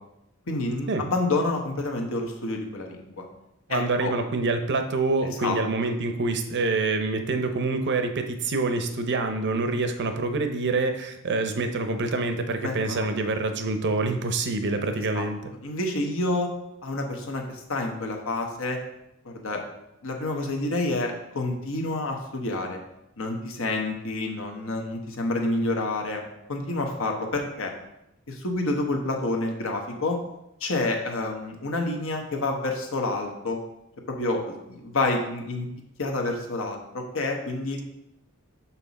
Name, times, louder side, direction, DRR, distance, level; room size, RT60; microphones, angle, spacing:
voice 1, 0.5-3.2 3.7-4.1 5.4-5.6 12.6-13.1 15.1-15.3 15.6-16.5 16.8-18.8 19.2-19.6 20.0-22.8 23.2-26.2 26.5-27.7 28.3-30.2 30.6-33.6 34.1-35.7 36.0-37.8, left 2 dB, 65° left, 2 dB, 1.1 m, -28 dB
voice 2, 3.7-15.4, right 3 dB, 55° right, 7 dB, 0.7 m, -26 dB
5.8 x 5.7 x 4.1 m, 0.85 s
head